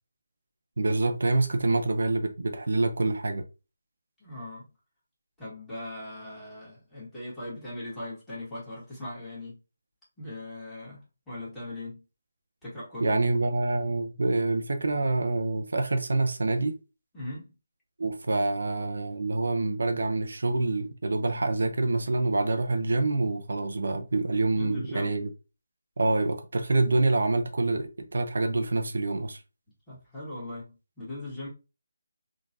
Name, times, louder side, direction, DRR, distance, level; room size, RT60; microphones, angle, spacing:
voice 1, 0.8-3.4 13.0-16.8 18.0-25.3 26.0-29.4, right 2 dB, 70° right, 0.6 m, -26 dB
voice 2, 4.2-4.6 5.4-9.6 10.2-11.0 11.3-12.0 12.6-13.2 17.1-17.5 24.5-25.1 29.9-31.5, left 1 dB, 5° left, 1.5 m, -39 dB
3.8 x 2.4 x 2.7 m
figure-of-eight pair, 160°, 0 cm